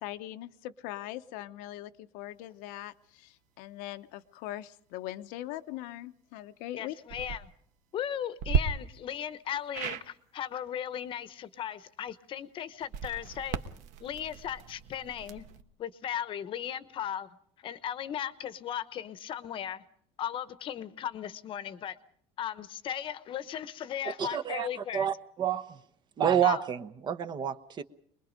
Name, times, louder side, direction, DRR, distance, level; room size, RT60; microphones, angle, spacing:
voice 1, 0.0-7.0, left 14 dB, 75° left, 0.9 m, -41 dB
voice 2, 6.8-7.5 7.9-13.6 14.0-15.4 15.8-17.4 17.6-19.8 20.2-22.0 22.4-25.1 26.4-26.6, left 9 dB, 35° left, 1.0 m, -37 dB
sound 1, 7.0-7.4 8.4-8.6 9.7-10.0 12.8-15.6, right 7 dB, 60° right, 1.3 m, -34 dB
voice 3, 24.2-25.8 26.2-27.8, right 9 dB, 30° right, 1.0 m, -29 dB
24.5 x 21.5 x 5.2 m
cardioid pair, 165°, 14 cm